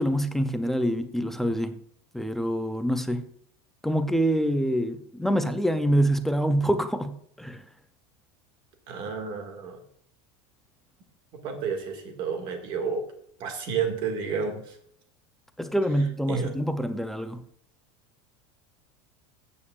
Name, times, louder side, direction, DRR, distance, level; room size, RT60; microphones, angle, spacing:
voice 1, 0.0-1.8 2.1-3.3 3.8-7.6 15.6-17.4, equal, ahead, 0.3 m, -26 dB
voice 2, 8.9-9.8 11.4-13.0 13.4-14.6 16.3-16.5, right 6 dB, 35° right, 1.8 m, -30 dB
14.0 x 8.7 x 2.4 m
supercardioid pair, 180°, 14 cm